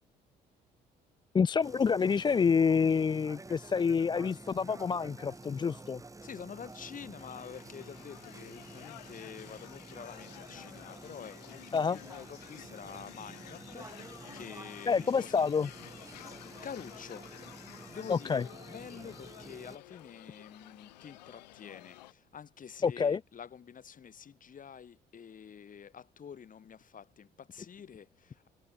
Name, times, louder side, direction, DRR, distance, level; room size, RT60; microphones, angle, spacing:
voice 1, 1.3-6.0 11.7-12.0 14.9-15.7 18.1-18.4 22.8-23.2, left 6 dB, 20° left, 0.4 m, -27 dB
sound 1, 1.6-19.8, right 3 dB, 15° right, 1.7 m, -50 dB
voice 2, 6.2-15.5 16.0-17.3 17.9-28.5, left 7 dB, 40° left, 2.1 m, -48 dB
sound 2, 7.2-22.1, left 16 dB, 75° left, 1.6 m, -52 dB
figure-of-eight pair, 50°, 21 cm